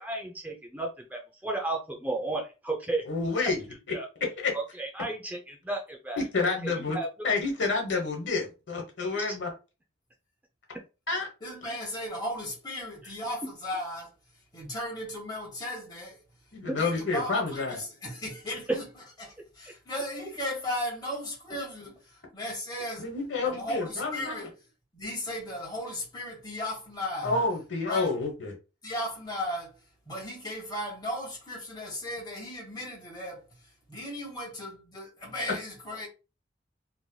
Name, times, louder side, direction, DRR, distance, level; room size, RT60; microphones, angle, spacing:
voice 1, 0.0-3.0 3.9-4.1 4.5-7.1 9.1-9.4 16.6-16.7, right 2 dB, 10° right, 0.5 m, -34 dB
voice 2, 3.0-3.6 4.4-4.5 6.2-7.0 7.2-9.5 11.1-11.3 16.5-17.8 23.0-24.5 27.2-28.5, left 3 dB, 80° left, 1.1 m, -29 dB
voice 3, 11.4-16.2 16.7-23.1 23.4-24.5 24.9-27.4 27.8-28.1 28.8-29.8 30.0-36.1, left 1 dB, 25° left, 1.4 m, -36 dB
3.1 x 2.9 x 2.2 m
head